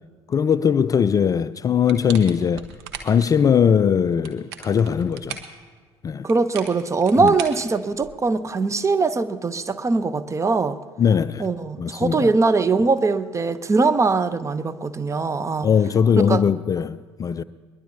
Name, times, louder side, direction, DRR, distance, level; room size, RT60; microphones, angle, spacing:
voice 1, 0.3-2.6 3.0-5.4 6.0-6.3 7.2-7.3 11.0-11.5 11.8-12.3 15.6-17.4, left 7 dB, 25° left, 0.4 m, -20 dB
sound 1, 1.9-3.3 4.1-5.6 6.3-8.3, right 8 dB, 65° right, 1.3 m, -38 dB
voice 2, 6.2-10.8 11.4-15.7 16.3-16.4, right 4 dB, 20° right, 0.7 m, -21 dB
22.0 x 20.5 x 2.7 m
figure-of-eight pair, 60°, 14 cm